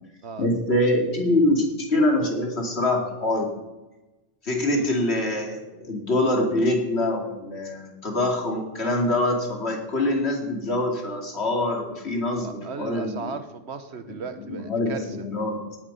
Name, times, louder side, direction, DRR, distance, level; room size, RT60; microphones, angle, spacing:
voice 1, 0.4-3.6 4.4-13.3 14.4-15.6, left 1 dB, 65° left, 1 dB, 2.7 m, -24 dB
voice 2, 12.4-15.1, right 5 dB, 65° right, 10 dB, 1.3 m, -36 dB
17.5 x 9.2 x 5.5 m, 1.1 s
omnidirectional pair, 1.2 m